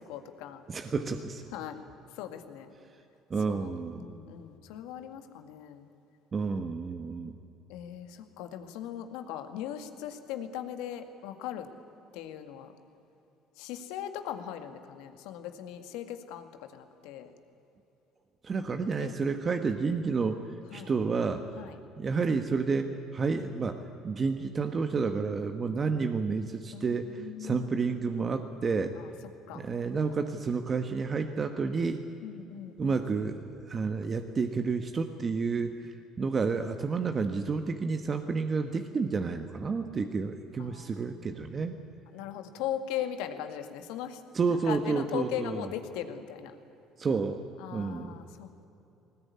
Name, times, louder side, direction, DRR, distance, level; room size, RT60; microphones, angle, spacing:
voice 1, 0.0-0.6 1.5-1.8 2.1-2.7 3.5-5.9 7.7-11.7 12.1-12.7 13.6-17.3 19.0-19.2 20.7-20.9 21.6-21.8 26.7-28.5 29.0-29.1 29.5-29.7 32.2-33.0 40.6-41.7 42.1-44.2 44.7-46.6 47.6-48.7, left 10 dB, 85° left, 8 dB, 1.9 m, -39 dB
voice 2, 0.7-1.4 3.3-4.2 6.3-7.3 18.4-20.4 20.7-21.4 22.0-28.9 29.5-32.0 32.8-41.8 44.3-45.7 47.0-48.2, right 4 dB, 35° right, 7 dB, 1.2 m, -30 dB
20.0 x 19.0 x 9.7 m, 2.9 s
supercardioid pair, 95°, 0 cm